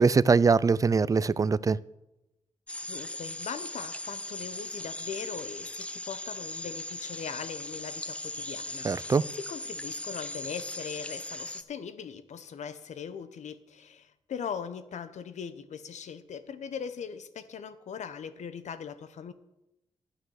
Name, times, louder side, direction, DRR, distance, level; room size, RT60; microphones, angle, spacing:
voice 1, 0.0-1.8 8.8-9.2, right 5 dB, 30° right, 0.3 m, -22 dB
sound 1, 2.7-11.6, left 1 dB, 10° left, 0.6 m, -39 dB
voice 2, 2.9-19.3, left 7 dB, 75° left, 0.9 m, -40 dB
11.5 x 9.1 x 6.4 m
cardioid pair, 95°, 12 cm